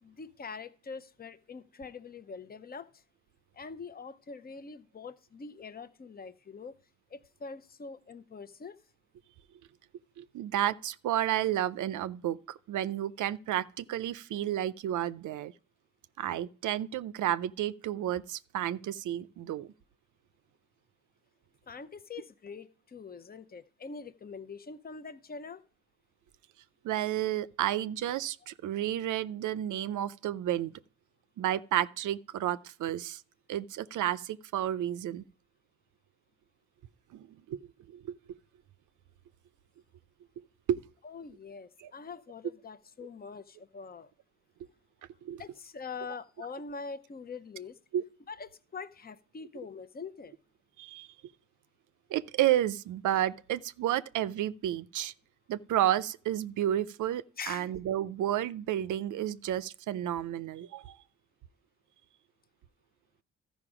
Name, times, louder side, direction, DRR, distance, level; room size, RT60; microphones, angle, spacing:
voice 1, 0.0-3.0 3.5-6.7 7.1-8.8 21.7-25.6 41.0-44.1 45.4-47.8 48.3-50.3 57.4-57.7, left 5 dB, 30° left, 0.7 m, -44 dB
voice 2, 10.2-15.5 16.2-19.7 26.8-30.7 31.4-33.2 33.5-35.2 37.1-37.6 37.9-38.0 40.7-40.8 45.2-45.4 47.9-48.0 50.8-51.1 52.1-55.1 55.5-61.0, right 12 dB, 85° right, 0.5 m, -31 dB
13.0 x 5.3 x 4.9 m
cardioid pair, 60°, 30 cm